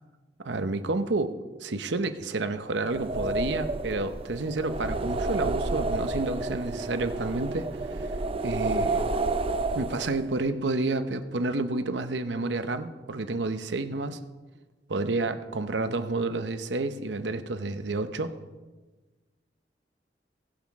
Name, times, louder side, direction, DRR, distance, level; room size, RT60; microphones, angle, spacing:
voice 1, 0.4-8.1 8.4-9.0 9.7-14.2 14.9-18.3, right 2 dB, 80° right, 10 dB, 0.8 m, -30 dB
sound 1, 2.8-10.4, right 2 dB, 30° right, 0.4 m, -30 dB
19.5 x 6.6 x 3.6 m, 1.3 s
head